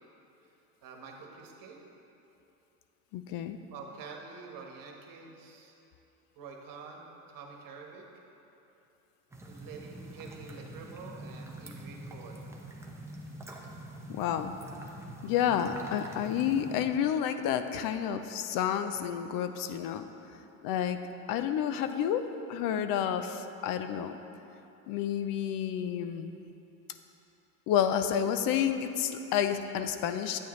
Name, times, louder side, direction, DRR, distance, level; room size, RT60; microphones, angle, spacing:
voice 1, 0.8-1.8 3.7-5.7 6.4-8.0 9.5-12.5, right 4 dB, 50° right, 1 dB, 1.4 m, -47 dB
voice 2, 3.1-3.6 14.1-14.5 15.2-20.0 20.6-21.0 21.3-22.2 22.5-24.2 24.9-26.4 27.7-30.4, left 9 dB, 50° left, 9 dB, 0.6 m, -30 dB
sound 1, 9.3-16.8, right 1 dB, 5° right, 0.9 m, -45 dB
9.3 x 8.4 x 3.2 m, 2.9 s
supercardioid pair, 100°, 43 cm